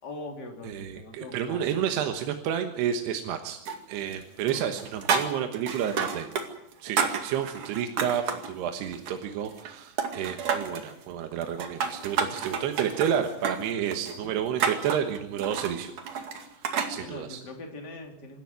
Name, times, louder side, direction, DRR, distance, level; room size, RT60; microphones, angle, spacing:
voice 1, 0.0-1.8 4.5-4.8 7.3-7.4 14.1-14.4 16.9-18.4, left 2 dB, 25° left, 2 dB, 3.7 m, -42 dB
voice 2, 0.6-3.6 3.9-6.3 6.8-15.9 16.5-17.4, right 9 dB, 80° right, 6 dB, 3.3 m, -30 dB
sound 1, 3.7-4.2 4.5-6.5 6.7-8.5 8.9-9.7 10.0-10.9 11.4-16.9, right 6 dB, 55° right, 3.3 m, -30 dB
26.0 x 13.5 x 9.6 m, 0.81 s
omnidirectional pair, 4.8 m